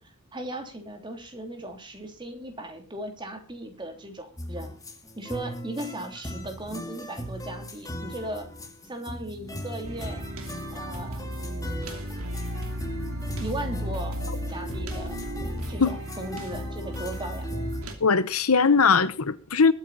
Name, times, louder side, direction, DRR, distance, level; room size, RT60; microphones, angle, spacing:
voice 1, 0.0-4.8 5.2-8.5 8.8-10.3 10.7-11.9 13.4-14.2 14.5-15.2 15.7-17.5, right 1 dB, 20° right, 3.2 m, -37 dB
sound 1, 4.4-17.8, equal, 15° left, 2.0 m, -38 dB
sound 2, 9.8-17.9, right 1 dB, 70° right, 2.9 m, -35 dB
voice 2, 18.0-19.7, left 5 dB, 90° left, 1.0 m, -20 dB
21.5 x 9.2 x 4.1 m
head